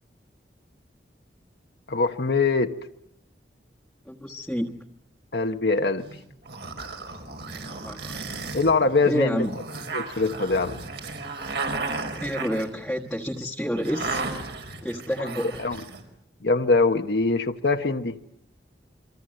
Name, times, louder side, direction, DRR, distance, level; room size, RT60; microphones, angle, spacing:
voice 1, 1.9-2.8 5.3-6.0 8.5-9.5 9.9-10.8 15.6-15.8 16.4-18.1, left 3 dB, 70° left, 5 dB, 1.1 m, -23 dB
voice 2, 4.0-4.8 7.5-8.4 9.0-9.6 12.2-14.3 14.8-15.6, equal, 5° left, -2 dB, 1.4 m, -29 dB
sound 1, 6.0-16.0, right 3 dB, 75° right, 5.0 m, -34 dB
28.5 x 24.5 x 7.8 m, 0.76 s
head